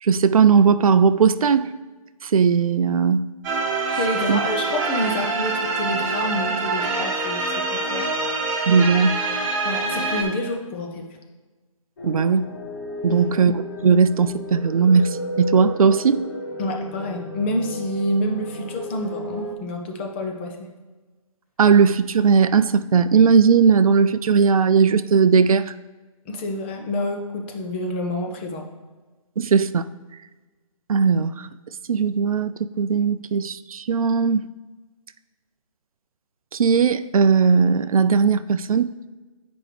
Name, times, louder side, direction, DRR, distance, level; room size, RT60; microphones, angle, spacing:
voice 1, 0.0-1.7 2.2-3.3 4.3-4.4 8.7-9.2 12.0-12.5 13.0-13.5 13.8-16.2 21.6-25.7 29.4-29.8 30.9-31.5 31.9-32.5 32.8-34.5 36.5-38.9, right 5 dB, 75° right, 13 dB, 0.4 m, -18 dB
sound 1, 3.4-10.2, right 3 dB, 30° right, 1.4 m, -25 dB
voice 2, 4.0-8.1 9.6-11.2 13.1-13.3 16.6-20.7 26.3-28.7, left 1 dB, 20° left, 3 dB, 0.6 m, -28 dB
sound 2, 12.0-19.5, left 1 dB, 45° left, 1.1 m, -34 dB
8.4 x 5.0 x 3.3 m, 1.3 s
hypercardioid pair, 150°, 18 cm